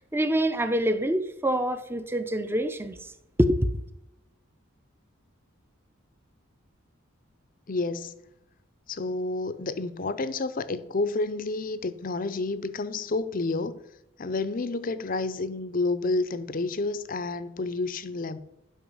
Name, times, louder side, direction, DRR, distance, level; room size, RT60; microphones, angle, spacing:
voice 1, 0.1-3.0 3.4-3.7, equal, 10° right, 0.6 m, -25 dB
voice 2, 7.7-8.1 8.9-13.8 14.2-18.4, left 3 dB, 40° left, 0.6 m, -30 dB
11.0 x 5.7 x 5.5 m
head